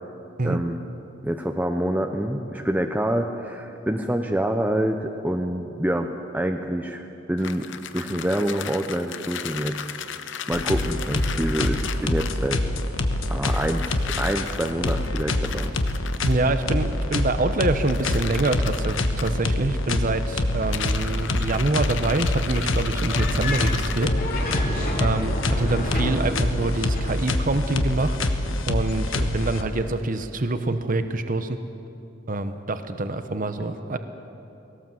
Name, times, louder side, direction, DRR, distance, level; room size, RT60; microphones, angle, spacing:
voice 1, 0.4-0.8 1.2-7.7 7.9-9.8 10.5-12.6 13.3-15.7, right 1 dB, 10° right, 4 dB, 0.7 m, -26 dB
sound 1, 7.4-12.5 13.5-16.3 17.9-19.3 20.6-24.1, left 8 dB, 65° left, 0.8 m, -35 dB
sound 2, 10.5-30.0, left 1 dB, 85° left, 1.3 m, -26 dB
voice 2, 16.2-24.1 25.0-28.3 28.7-31.6 32.3-34.0, right 2 dB, 45° right, 9 dB, 0.9 m, -25 dB
sound 3, 23.1-27.1, left 1 dB, 50° left, 3.1 m, -30 dB
20.0 x 18.0 x 7.6 m, 2.8 s
head